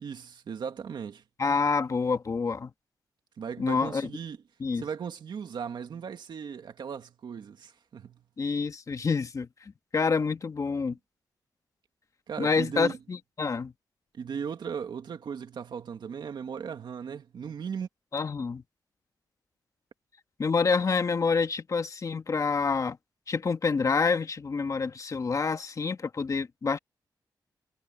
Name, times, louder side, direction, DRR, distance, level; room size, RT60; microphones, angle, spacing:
voice 1, 0.0-1.2 3.4-4.4 4.7-8.2 12.3-13.0 14.1-17.9, right 7 dB, 70° right, 2.1 m, -37 dB
voice 2, 1.4-2.7 3.6-4.1 4.6-4.8 8.4-9.5 9.9-11.0 12.4-13.7 18.1-18.6 20.4-23.0 23.3-26.8, left 4 dB, 45° left, 1.5 m, -27 dB
cardioid pair, 95°, 8 cm